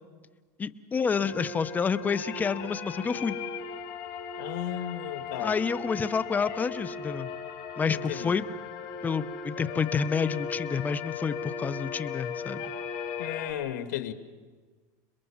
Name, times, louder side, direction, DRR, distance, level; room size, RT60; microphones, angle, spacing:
voice 1, 0.6-3.4 5.4-7.3 7.8-8.4 9.0-12.6, left 6 dB, 20° left, 14 dB, 0.8 m, -29 dB
sound 1, 1.1-13.5, left 5 dB, 50° left, 5.1 m, -37 dB
voice 2, 4.4-5.6 7.9-8.4 13.2-14.1, left 12 dB, 90° left, 9 dB, 1.9 m, -35 dB
28.0 x 22.0 x 7.3 m, 1.4 s
supercardioid pair, 140°, 9 cm